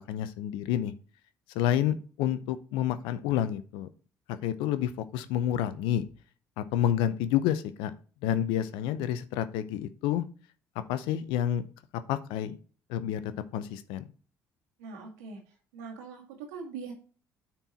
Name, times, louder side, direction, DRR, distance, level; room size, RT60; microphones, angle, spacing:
voice 1, 0.1-0.9 1.5-3.9 4.4-6.0 6.6-7.9 8.2-10.2 10.9-11.6 12.1-12.6 12.9-13.2 13.5-14.0, left 11 dB, 75° left, 13 dB, 0.7 m, -29 dB
voice 2, 14.8-16.9, right 5 dB, 85° right, 1 dB, 2.1 m, -42 dB
9.0 x 4.6 x 4.2 m, 0.38 s
hypercardioid pair, 60°, 9 cm